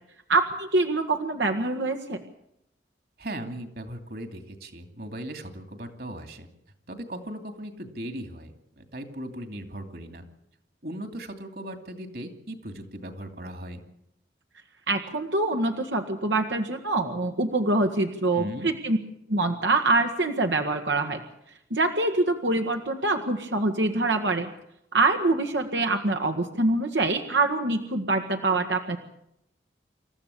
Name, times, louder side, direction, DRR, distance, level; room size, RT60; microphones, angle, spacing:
voice 1, 0.3-2.2 14.9-19.0 19.3-21.2 21.7-24.5 24.9-29.0, right 2 dB, 85° right, 5 dB, 1.7 m, -25 dB
voice 2, 3.2-6.5 6.9-10.2 10.8-13.8 18.3-18.7, right 1 dB, 55° right, 6 dB, 2.7 m, -38 dB
27.5 x 14.5 x 8.5 m, 0.78 s
head